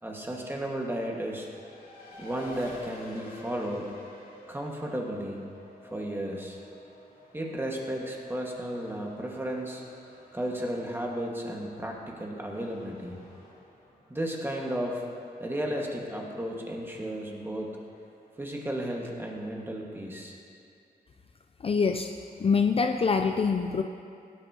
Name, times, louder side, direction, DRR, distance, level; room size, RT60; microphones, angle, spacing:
voice 1, 0.0-1.5 2.2-3.9 4.5-5.4 5.8-6.6 7.3-9.8 10.3-13.2 14.1-15.1 15.4-17.7 18.4-20.4, right 1 dB, 15° right, -1 dB, 1.6 m, -34 dB
Race car auto racing, 1.1-20.2, left 2 dB, 70° left, 2.7 m, -53 dB
voice 2, 21.6-22.1 22.4-23.8, left 5 dB, 35° left, 5 dB, 0.4 m, -25 dB
16.5 x 9.6 x 2.8 m, 2.4 s
wide cardioid pair, 100°, 16 cm